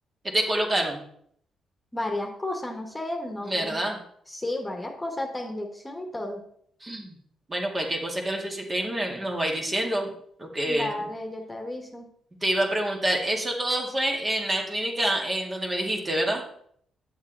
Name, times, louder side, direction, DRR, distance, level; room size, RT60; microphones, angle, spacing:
voice 1, 0.3-1.0 3.4-4.0 6.8-7.1 7.5-10.1 10.4-11.0 12.4-16.4, right 1 dB, 25° right, 1 dB, 1.9 m, -27 dB
voice 2, 1.9-3.8 4.3-6.4 10.7-12.1, left 1 dB, 15° left, 2 dB, 1.6 m, -33 dB
8.7 x 7.1 x 4.0 m, 0.65 s
cardioid pair, 85°, 0 cm